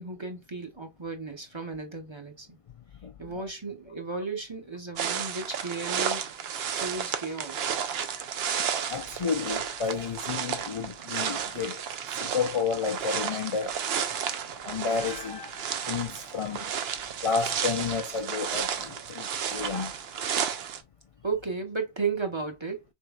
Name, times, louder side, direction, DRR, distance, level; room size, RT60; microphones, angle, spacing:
voice 1, 0.0-2.6 3.2-6.2 6.8-7.7 21.2-22.8, right 4 dB, 30° right, 0.7 m, -34 dB
voice 2, 3.0-3.5 4.1-4.2 8.9-13.8 14.6-16.7 17.2-20.0, left 5 dB, 55° left, 0.4 m, -31 dB
sound 1, 5.0-20.8, right 8 dB, 75° right, 0.8 m, -32 dB
3.8 x 3.5 x 2.3 m
omnidirectional pair, 1.1 m